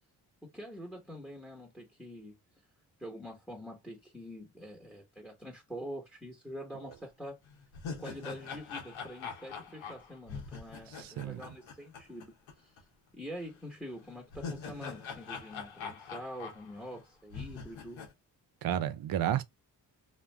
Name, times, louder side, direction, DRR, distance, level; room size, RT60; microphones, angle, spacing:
voice 1, 0.4-2.4 3.0-7.4 8.0-12.8 13.1-18.1, equal, ahead, 1.0 m, -45 dB
sound 1, 6.9-7.0 7.5-12.5 12.8-12.9 14.0-17.0 17.3-18.1, left 5 dB, 85° left, 0.9 m, -43 dB
voice 2, 11.0-11.4 18.6-19.4, right 10 dB, 50° right, 0.5 m, -31 dB
2.4 x 2.1 x 3.2 m
supercardioid pair, 50°, 45 cm